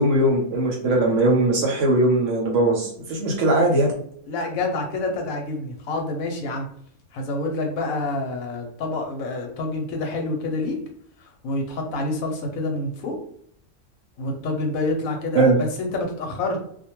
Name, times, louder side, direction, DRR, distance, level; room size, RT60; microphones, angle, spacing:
voice 1, 0.0-3.9 15.3-15.6, right 2 dB, 65° right, 0 dB, 0.9 m, -20 dB
voice 2, 4.3-6.7 7.1-10.8 11.2-13.2 14.2-16.6, left 2 dB, 70° left, 3 dB, 1.0 m, -27 dB
2.4 x 2.2 x 2.9 m, 0.64 s
omnidirectional pair, 1.6 m